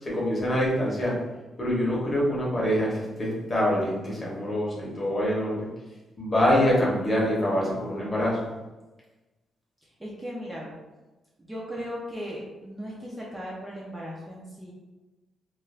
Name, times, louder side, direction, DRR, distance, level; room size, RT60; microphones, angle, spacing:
voice 1, 0.0-1.2 1.6-5.7 6.2-8.5, equal, 20° left, -5 dB, 0.8 m, -25 dB
voice 2, 9.8-10.8 11.4-14.7, equal, 10° right, -5 dB, 0.4 m, -37 dB
2.3 x 2.2 x 3.2 m, 1.1 s
cardioid pair, 150°, 0 cm